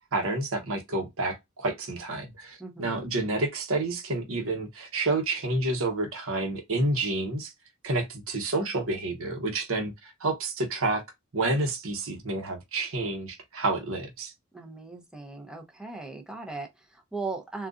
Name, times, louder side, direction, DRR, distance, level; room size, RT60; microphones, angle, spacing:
voice 1, 0.1-7.5 7.8-11.0 11.3-14.3, right 2 dB, 65° right, 1.0 m, -29 dB
voice 2, 2.6-3.1 14.5-17.7, right 3 dB, 5° right, 0.7 m, -38 dB
3.8 x 2.4 x 2.5 m
head